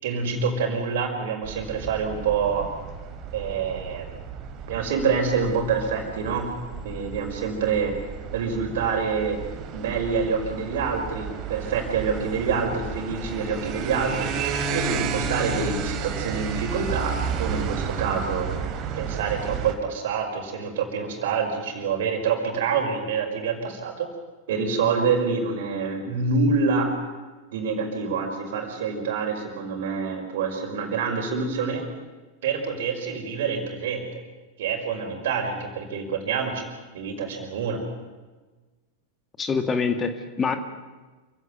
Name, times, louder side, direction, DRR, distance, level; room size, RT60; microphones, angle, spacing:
voice 1, 0.0-2.7 3.3-4.1 4.7-6.5 6.8-8.0 8.3-9.4 9.7-14.4 14.7-18.5 19.0-24.1 24.5-27.0 27.5-31.9 32.4-34.1 34.6-36.6 36.9-37.8, right 5 dB, 55° right, 4 dB, 5.3 m, -26 dB
sound 1, 1.4-19.7, right 6 dB, 35° right, 2.8 m, -32 dB
voice 2, 39.4-40.6, left 5 dB, 20° left, 8 dB, 2.0 m, -25 dB
28.0 x 16.5 x 9.4 m, 1.3 s
figure-of-eight pair, 90°, 0 cm